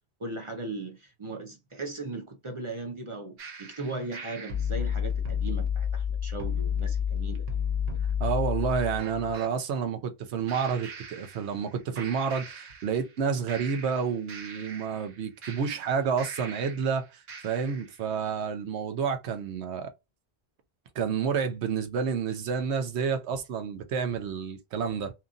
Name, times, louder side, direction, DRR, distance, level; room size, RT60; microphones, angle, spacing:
voice 1, 0.2-7.6, right 2 dB, 40° right, 0.5 m, -38 dB
sound 1, 3.4-9.5 10.5-11.7 12.0-13.2 13.5-16.9 17.3-17.9, left 7 dB, 65° right, 1.0 m, -33 dB
voice 2, 8.2-19.9 20.9-25.1, right 6 dB, 85° right, 1.0 m, -29 dB
2.9 x 2.5 x 2.4 m
omnidirectional pair, 1.1 m